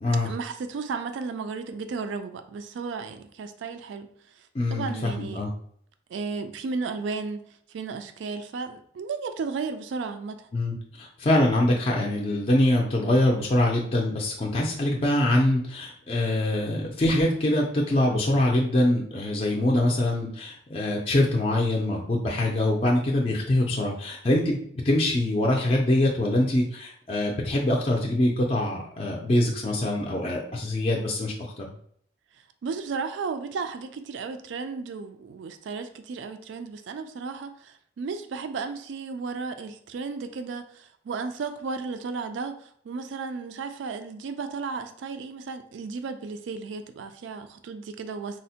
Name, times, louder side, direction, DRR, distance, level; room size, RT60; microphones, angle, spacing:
voice 1, 0.2-4.1 4.4-5.4 6.1-10.5 32.6-48.4, right 4 dB, 75° right, 9 dB, 0.3 m, -34 dB
voice 2, 4.5-5.5 10.5-31.7, left 1 dB, 30° left, -1 dB, 0.4 m, -24 dB
4.1 x 2.0 x 2.8 m, 0.63 s
head